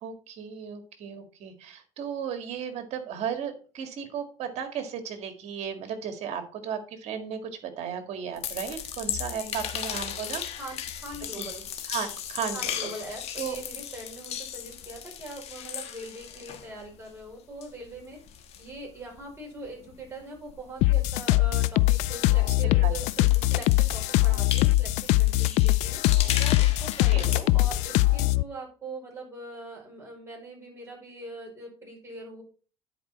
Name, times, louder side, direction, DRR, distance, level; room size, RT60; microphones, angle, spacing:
voice 1, 0.0-10.4 11.4-11.5 11.9-12.9 13.4-13.6 22.8-22.9 27.1-27.3, right 7 dB, 65° right, 7 dB, 1.9 m, -35 dB
sound 1, 8.3-17.3 17.6-22.6 22.9-27.8, left 9 dB, 60° left, 1.4 m, -37 dB
voice 2, 10.5-11.6 12.5-32.4, right 2 dB, 20° right, -1 dB, 4.9 m, -42 dB
sound 2, 20.8-28.4, left 17 dB, 80° left, 0.4 m, -22 dB
10.0 x 4.8 x 4.2 m, 0.37 s
cardioid pair, 100°, 12 cm